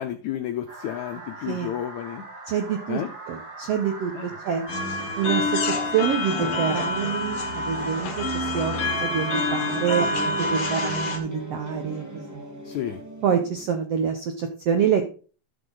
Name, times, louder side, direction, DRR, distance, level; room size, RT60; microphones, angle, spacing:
voice 1, 0.0-2.2 2.9-3.1 4.1-4.4 12.6-13.0, left 11 dB, 80° left, 7 dB, 1.6 m, -31 dB
sound 1, 0.7-11.0, right 2 dB, 30° right, 2.2 m, -41 dB
voice 2, 2.5-3.0 3.3-4.7 5.2-8.7 9.0-12.0 12.3-12.4 13.2-15.0, right 8 dB, 80° right, 6 dB, 1.4 m, -26 dB
sound 2, 4.7-11.2, left 2 dB, 45° left, 2.4 m, -27 dB
sound 3, 8.6-13.8, right 2 dB, 10° right, 1.0 m, -38 dB
13.0 x 6.0 x 3.9 m, 0.37 s
omnidirectional pair, 4.2 m